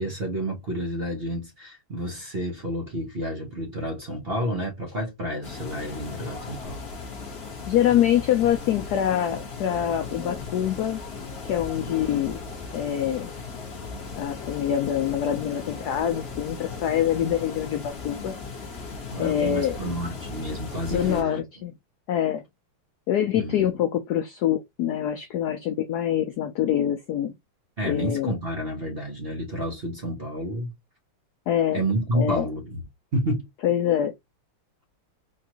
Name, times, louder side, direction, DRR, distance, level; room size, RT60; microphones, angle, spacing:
voice 1, 0.0-6.8 11.7-12.0 19.1-21.4 23.3-23.7 27.8-30.7 31.7-32.8 33.1-33.5, right 1 dB, 45° right, 0.8 m, -30 dB
sound 1, 5.4-21.2, left 4 dB, 35° left, 1.3 m, -37 dB
voice 2, 7.7-11.0 11.4-12.4 12.7-13.3 14.1-18.3 19.2-19.8 20.9-21.7 22.1-22.4 23.1-27.3 27.8-28.3 31.5-31.8 32.1-32.5 33.6-34.1, left 10 dB, 80° left, 0.9 m, -25 dB
4.4 x 2.4 x 2.9 m
omnidirectional pair, 2.2 m